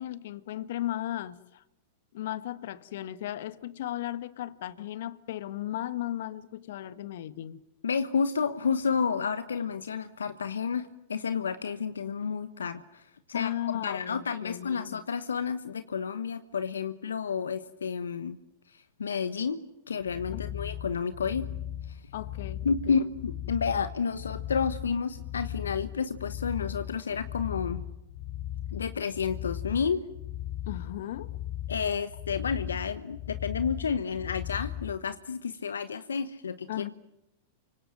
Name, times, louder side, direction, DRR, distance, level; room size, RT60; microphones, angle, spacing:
voice 1, 0.0-1.6 2.1-7.6 13.3-15.0 20.3-20.6 22.1-23.0 30.7-31.4 36.7-36.9, left 13 dB, 65° left, 1.5 m, -36 dB
voice 2, 7.8-18.4 18.7-19.6 19.9-21.5 21.9-22.0 22.6-27.8 28.7-30.0 31.7-36.8, left 6 dB, 80° left, 1.1 m, -31 dB
sound 1, 20.0-35.0, left 12 dB, 40° left, 3.7 m, -38 dB
30.0 x 25.5 x 7.8 m
hypercardioid pair, 100°, 0 cm